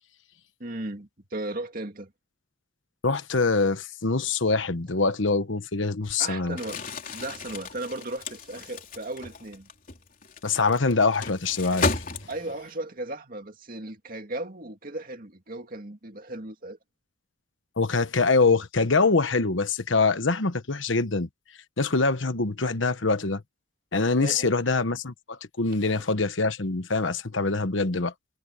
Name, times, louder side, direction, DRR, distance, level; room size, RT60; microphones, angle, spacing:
voice 1, 0.6-2.1 6.2-9.7 12.3-16.8 24.2-24.5 25.8-25.9, right 2 dB, 45° right, 2.3 m, -36 dB
voice 2, 3.0-6.6 10.4-12.0 17.8-21.3 21.8-23.4 23.9-28.1, left 3 dB, 75° left, 1.2 m, -24 dB
Crumpling crinkling, 6.5-12.7, left 3 dB, 45° left, 3.6 m, -34 dB
head